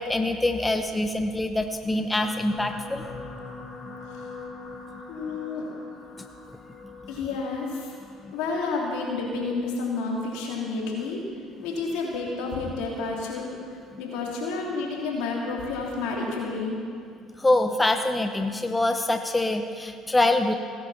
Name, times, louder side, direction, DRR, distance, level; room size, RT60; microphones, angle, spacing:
voice 1, 0.0-3.1 8.2-8.3 17.4-20.5, left 2 dB, 15° left, 6 dB, 1.0 m, -24 dB
sound 1, 2.2-10.6 11.4-11.6 11.9-12.0, left 4 dB, 40° left, 3.0 m, -43 dB
voice 2, 5.1-5.7 7.1-7.9 8.3-11.2 11.6-13.5 14.0-16.8, left 3 dB, 80° left, -2 dB, 3.2 m, -30 dB
17.5 x 11.0 x 5.8 m, 2.3 s
supercardioid pair, 70°, 0 cm